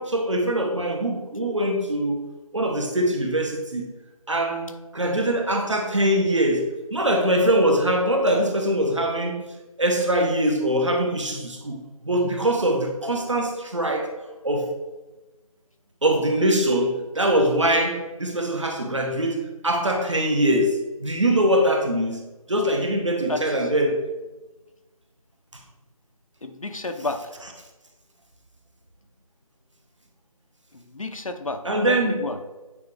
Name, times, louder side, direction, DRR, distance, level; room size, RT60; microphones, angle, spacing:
voice 1, 0.0-2.2 2.5-3.9 4.3-9.4 9.8-14.1 14.4-14.7 16.0-22.2 22.5-24.0 31.6-32.2, right 1 dB, 50° right, 3 dB, 1.1 m, -23 dB
voice 2, 23.3-23.7 26.4-27.2 30.7-32.4, left 2 dB, 60° left, 6 dB, 0.8 m, -31 dB
9.1 x 3.4 x 3.4 m, 1.1 s
figure-of-eight pair, 165°, 19 cm